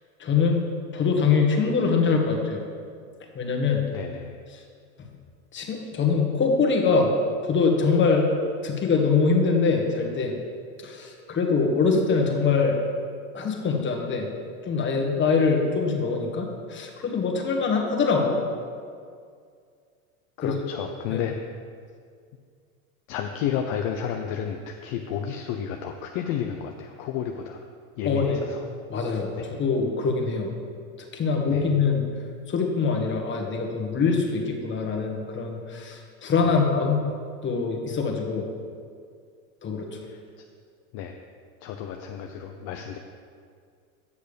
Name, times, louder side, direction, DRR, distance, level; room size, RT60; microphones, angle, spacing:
voice 1, 0.2-0.6 0.9-2.6 3.3-3.9 4.5-4.6 5.5-7.1 7.4-8.3 8.6-10.3 10.8-12.8 13.3-14.3 14.6-18.4 20.4-20.6 21.1-21.2 28.0-28.4 28.9-30.5 31.1-32.1 32.5-37.1 37.4-38.5 39.6-40.0, left 4 dB, 25° left, 1 dB, 1.5 m, -23 dB
voice 2, 3.8-4.3 20.4-21.4 23.1-27.6 28.0-28.6 29.4-29.5 31.5-31.7 36.4-36.6 40.9-41.1 41.6-43.0, left 8 dB, 50° left, 3 dB, 0.7 m, -31 dB
8.4 x 6.5 x 5.1 m, 2.2 s
hypercardioid pair, 105°, 42 cm